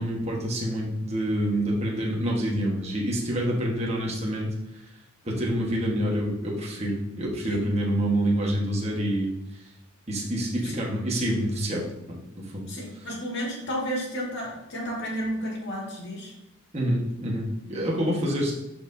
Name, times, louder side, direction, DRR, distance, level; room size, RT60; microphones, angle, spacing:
voice 1, 0.0-4.5 5.2-9.3 10.1-12.7 16.7-18.5, right 1 dB, 30° right, -3 dB, 1.4 m, -27 dB
voice 2, 12.7-16.3 18.3-18.5, equal, 55° left, -2 dB, 2.2 m, -32 dB
11.5 x 4.6 x 2.8 m, 0.87 s
head